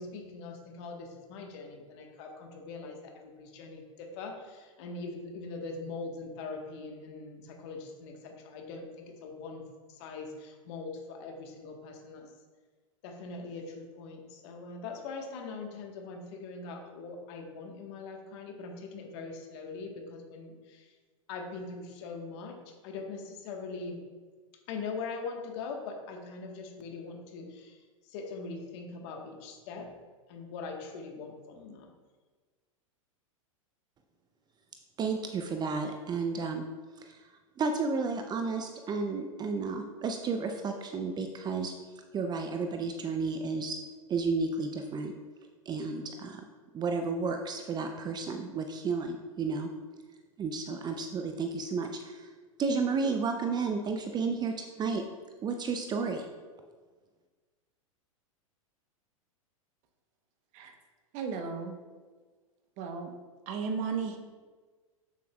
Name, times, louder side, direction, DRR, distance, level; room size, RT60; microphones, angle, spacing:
voice 1, 0.0-12.3 13.0-21.0 21.3-24.0 24.7-29.9 30.3-31.9, left 4 dB, 55° left, 3 dB, 1.3 m, -42 dB
voice 2, 35.0-36.6 37.0-37.2 37.6-41.7 42.1-43.8 44.1-45.1 45.7-46.4 46.7-49.7 50.4-52.3 52.6-55.0 55.4-56.3, right 4 dB, 25° right, 5 dB, 0.5 m, -32 dB
voice 3, 61.1-61.8 62.8-63.1 63.5-64.2, right 5 dB, 45° right, 5 dB, 1.0 m, -34 dB
8.4 x 7.2 x 2.3 m, 1.4 s
hypercardioid pair, 100°, 18 cm